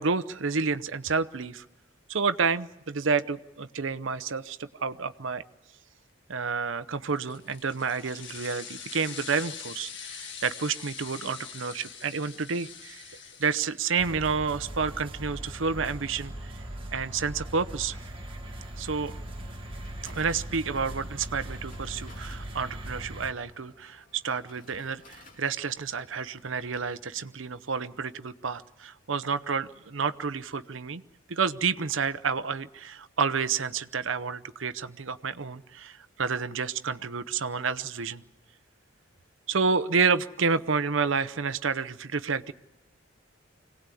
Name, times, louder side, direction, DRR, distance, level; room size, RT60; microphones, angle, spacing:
voice 1, 0.0-1.6 2.1-5.4 6.3-13.0 13.4-16.6 16.9-18.0 18.8-19.1 20.0-31.0 31.3-38.2 39.5-42.5, right 5 dB, 70° right, 12 dB, 0.8 m, -30 dB
sound 1, 7.1-14.1, left 7 dB, 65° left, 1.7 m, -43 dB
sound 2, 14.0-23.3, right 1 dB, 25° right, 1.8 m, -40 dB
sound 3, 19.7-27.0, left 1 dB, 40° left, 2.8 m, -55 dB
25.5 x 18.0 x 8.5 m, 1.0 s
head